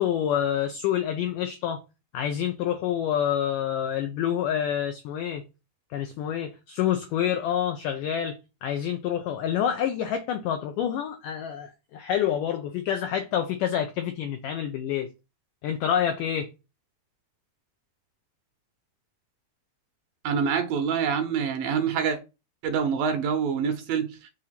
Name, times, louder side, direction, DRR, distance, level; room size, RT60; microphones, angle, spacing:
voice 1, 0.0-1.8 2.1-5.4 5.9-15.1 15.6-16.5, left 9 dB, 90° left, 1.8 m, -27 dB
voice 2, 20.2-22.2 22.6-24.3, right 6 dB, 75° right, 2.3 m, -26 dB
6.5 x 2.8 x 5.7 m
omnidirectional pair, 4.6 m